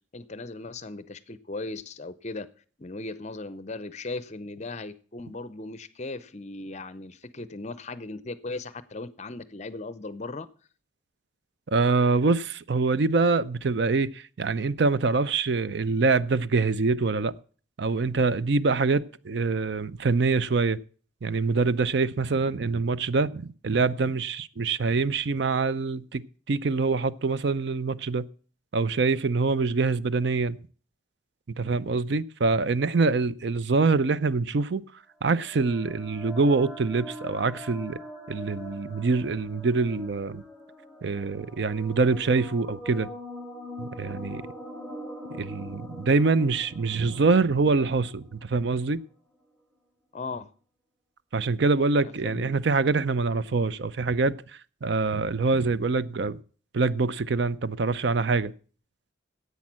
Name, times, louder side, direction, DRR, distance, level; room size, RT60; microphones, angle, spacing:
voice 1, 0.1-2.5 2.8-10.5 50.1-50.5 52.0-52.6, left 3 dB, 35° left, 0.6 m, -37 dB
voice 2, 11.7-17.3 17.8-20.8 21.2-26.2 26.5-28.3 28.7-30.6 31.6-34.8 35.2-38.0 38.3-40.4 41.0-43.1 43.8-44.5 45.4-49.0 51.3-54.4 54.8-56.4 56.7-58.5, right 4 dB, 60° right, 0.5 m, -25 dB
sound 1, 35.2-48.8, equal, 5° right, 5.0 m, -43 dB
10.5 x 8.2 x 7.4 m
head